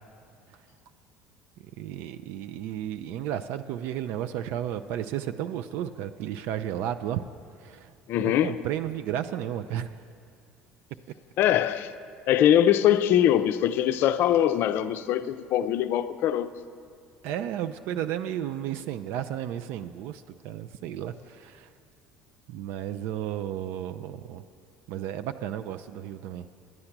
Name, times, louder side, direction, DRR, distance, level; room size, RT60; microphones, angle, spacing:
voice 1, 1.6-7.2 7.6-7.9 8.2-10.0 17.2-21.7 22.5-24.4 24.9-26.5, right 11 dB, 65° right, 0.4 m, -33 dB
voice 2, 8.1-8.6 11.4-11.9 12.3-16.5, left 11 dB, 60° left, 0.4 m, -22 dB
11.0 x 8.6 x 5.9 m
hypercardioid pair, 70°, 4 cm